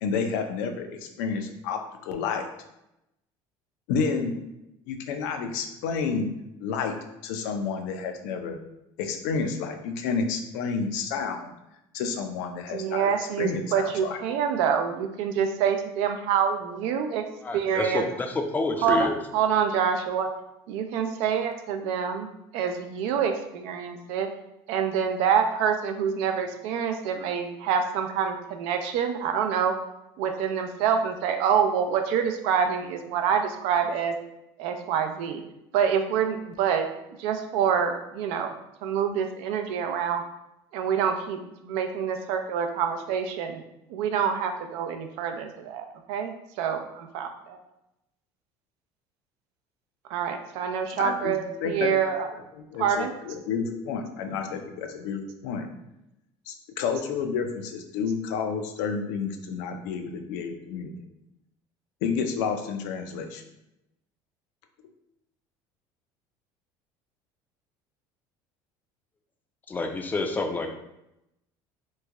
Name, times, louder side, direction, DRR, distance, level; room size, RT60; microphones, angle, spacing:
voice 1, 0.0-2.4 3.9-4.3 4.9-6.3 6.6-6.9 7.2-8.6 9.0-11.5 11.9-14.2 51.0-51.3 51.6-55.7 56.5-60.9 62.0-63.4, left 5 dB, 90° left, 5 dB, 0.5 m, -30 dB
voice 2, 12.7-17.2 17.5-18.1 18.8-19.1 19.3-20.3 20.7-22.3 22.5-24.3 24.7-29.8 30.2-34.2 34.6-35.4 35.7-36.9 37.2-38.5 38.8-40.2 40.7-43.6 43.9-47.6 50.1-52.3 52.8-53.1, right 7 dB, 75° right, 6 dB, 0.4 m, -26 dB
voice 3, 17.4-19.2 69.7-70.7, left 3 dB, 15° left, 4 dB, 0.4 m, -28 dB
3.1 x 2.2 x 3.5 m, 0.87 s
cardioid pair, 130°, 10 cm